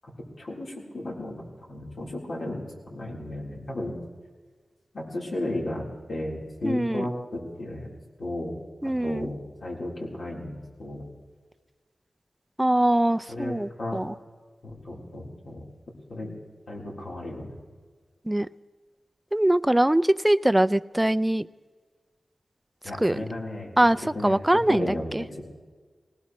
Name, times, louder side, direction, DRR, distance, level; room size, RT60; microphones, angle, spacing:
voice 1, 0.4-1.3 1.7-4.0 4.9-7.9 8.2-8.6 8.8-11.0 13.3-14.0 14.6-15.6 16.1-16.3 16.7-17.5 22.8-23.7 24.1-24.4 24.7-25.1, left 1 dB, 70° left, -3 dB, 3.8 m, -34 dB
voice 2, 6.6-7.1 8.8-9.3 12.6-14.1 18.3-18.5 19.3-21.5 23.0-23.2 23.8-25.2, right 1 dB, 10° right, 14 dB, 0.4 m, -23 dB
20.0 x 19.5 x 3.1 m, 1.5 s
wide cardioid pair, 95°, 0 cm